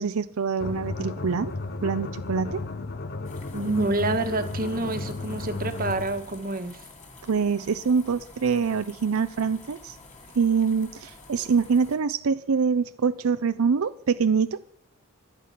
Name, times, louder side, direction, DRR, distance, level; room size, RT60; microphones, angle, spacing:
voice 1, 0.0-1.5 1.8-2.6 7.2-10.0 10.4-14.6, right 5 dB, 85° right, 0.5 m, -25 dB
sound 1, 0.6-6.3, left 3 dB, 50° left, 0.8 m, -34 dB
sound 2, 3.2-12.0, left 3 dB, 35° left, 2.5 m, -49 dB
voice 2, 3.5-6.9, right 2 dB, 45° right, 1.3 m, -27 dB
17.0 x 11.5 x 5.9 m
head